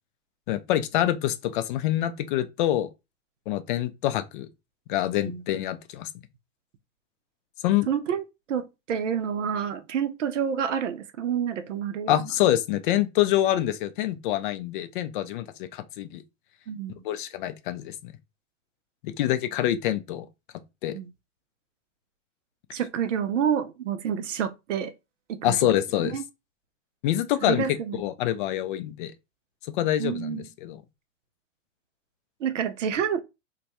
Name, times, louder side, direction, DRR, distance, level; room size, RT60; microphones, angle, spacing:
voice 1, 0.5-2.9 3.5-4.5 4.9-6.1 7.6-7.9 12.1-16.2 17.0-18.1 19.0-20.3 20.8-20.9 25.4-26.2 27.0-29.1 29.8-30.8, left 13 dB, 45° left, 0.4 m, -26 dB
voice 2, 7.9-8.2 8.5-12.3 16.7-16.9 20.9-21.1 22.7-24.9 25.3-25.7 26.0-26.2 27.5-28.0 30.0-30.5 32.4-33.2, right 8 dB, 75° right, 0.6 m, -28 dB
2.2 x 2.2 x 2.7 m
hypercardioid pair, 110°, 38 cm